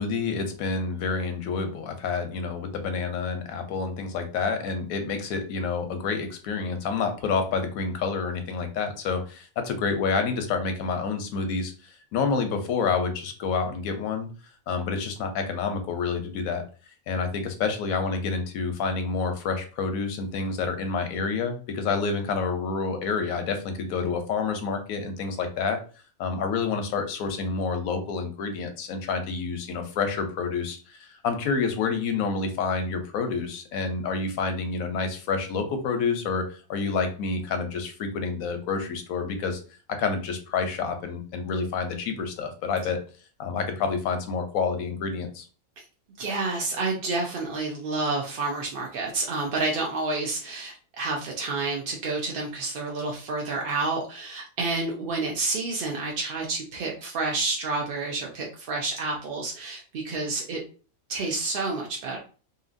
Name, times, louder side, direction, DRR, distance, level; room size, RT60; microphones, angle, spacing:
voice 1, 0.0-14.3 14.7-16.6 17.1-25.8 26.2-39.6 40.0-43.0 43.4-45.4, left 5 dB, 90° left, 7 dB, 1.1 m, -28 dB
voice 2, 46.2-60.6 61.1-62.2, right 3 dB, 65° right, -1 dB, 0.5 m, -29 dB
2.8 x 2.6 x 2.5 m, 0.38 s
omnidirectional pair, 1.4 m